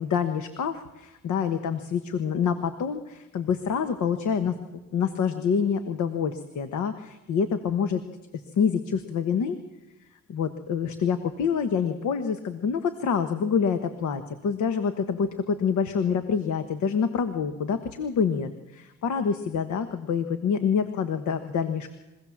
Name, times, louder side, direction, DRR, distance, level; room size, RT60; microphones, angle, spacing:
voice 1, 0.0-4.6 4.9-8.0 8.3-9.6 10.3-21.9, left 6 dB, 70° left, 9 dB, 1.3 m, -27 dB
23.5 x 16.5 x 7.3 m, 1.1 s
cardioid pair, 90°, 30 cm